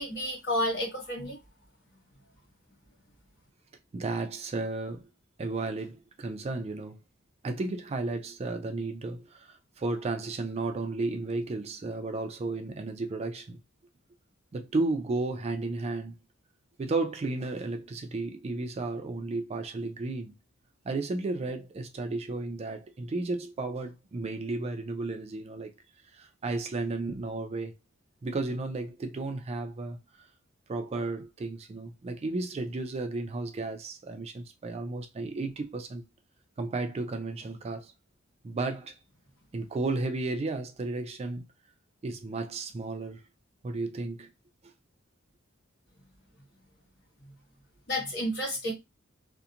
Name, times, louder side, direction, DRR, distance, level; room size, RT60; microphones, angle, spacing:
voice 1, 0.0-1.4 47.2-47.3 47.9-48.7, left 1 dB, 55° left, 1.1 m, -31 dB
voice 2, 3.9-5.1 5.4-7.0 7.4-13.6 14.5-16.2 16.8-20.3 20.9-25.7 26.1-27.8 28.2-30.0 30.7-36.0 36.6-37.9 38.4-39.0 39.5-41.4 42.0-43.2 43.6-44.3, right 3 dB, 30° right, 0.3 m, -33 dB
2.7 x 2.1 x 2.4 m
head